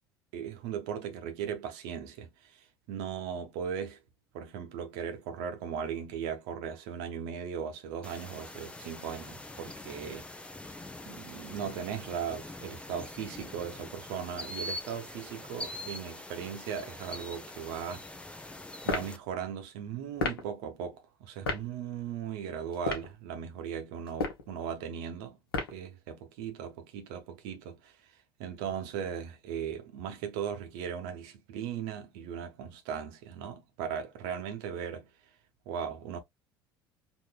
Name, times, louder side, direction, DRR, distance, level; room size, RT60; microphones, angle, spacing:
voice 1, 0.3-2.3 2.9-4.0 4.3-10.3 11.0-18.1 18.8-25.4 25.7-27.9 28.4-35.1 35.7-36.2, right 8 dB, 60° right, 1.2 m, -38 dB
sound 1, 8.0-19.2, left 1 dB, 10° left, 0.8 m, -43 dB
sound 2, 18.8-19.1 20.2-20.4 21.5-21.6 22.7-23.1 24.1-24.5 25.5-25.8, left 4 dB, 75° left, 1.1 m, -31 dB
5.0 x 3.1 x 2.3 m
figure-of-eight pair, 60°, 12 cm